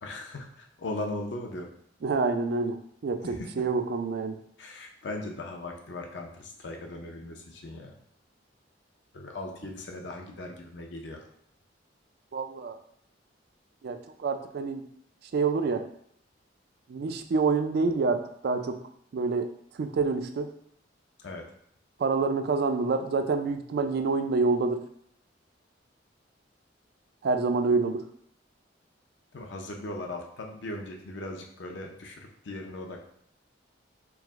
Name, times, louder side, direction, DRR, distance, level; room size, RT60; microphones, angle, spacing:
voice 1, 0.0-1.7 3.2-3.5 4.6-7.9 9.1-11.2 21.2-21.4 29.3-33.0, left 2 dB, 65° left, 2 dB, 0.5 m, -38 dB
voice 2, 2.0-2.8 3.0-4.4 12.3-12.8 13.8-14.8 15.3-15.8 16.9-18.8 19.1-19.5 19.8-20.5 22.0-24.8 27.2-28.0, right 4 dB, 55° right, 7 dB, 0.3 m, -27 dB
4.7 x 2.0 x 3.5 m, 0.67 s
head